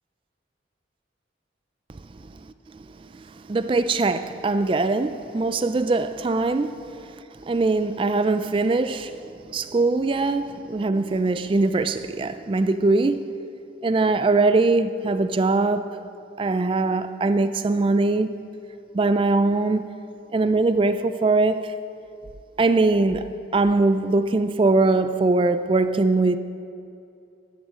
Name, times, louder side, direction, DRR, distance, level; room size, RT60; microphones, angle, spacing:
voice 1, 3.0-13.4 13.8-15.9 16.4-18.4 18.9-19.9 20.3-21.7 22.6-23.3 23.5-26.4, right 3 dB, 30° right, 0.3 m, -22 dB
13.5 x 12.0 x 3.7 m
head